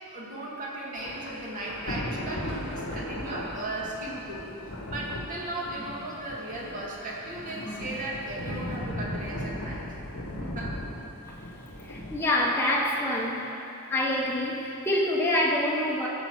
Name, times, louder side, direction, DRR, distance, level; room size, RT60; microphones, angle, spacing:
voice 1, 0.1-9.8 10.4-10.7, right 1 dB, 40° right, -4 dB, 2.0 m, -36 dB
Thunder / Rain, 1.0-12.3, left 1 dB, 85° left, 1.2 m, -37 dB
voice 2, 7.6-8.0 11.9-13.4 13.9-16.1, left 1 dB, 10° left, -3 dB, 1.0 m, -26 dB
14.0 x 5.1 x 6.1 m, 2.9 s
head